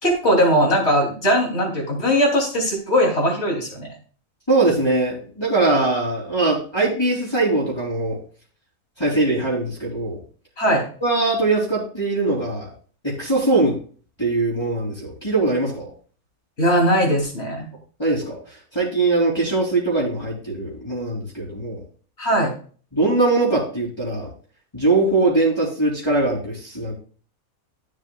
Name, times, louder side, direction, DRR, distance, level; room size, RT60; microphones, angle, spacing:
voice 1, 0.0-3.9 10.6-10.8 16.6-17.7 22.2-22.5, equal, 45° left, 0 dB, 3.4 m, -19 dB
voice 2, 4.5-8.2 9.0-10.2 11.0-12.7 13.0-13.8 14.2-15.9 18.0-21.8 22.9-24.3 24.7-26.9, right 2 dB, 15° left, -6 dB, 3.3 m, -21 dB
13.5 x 7.5 x 2.4 m, 0.41 s
omnidirectional pair, 1.5 m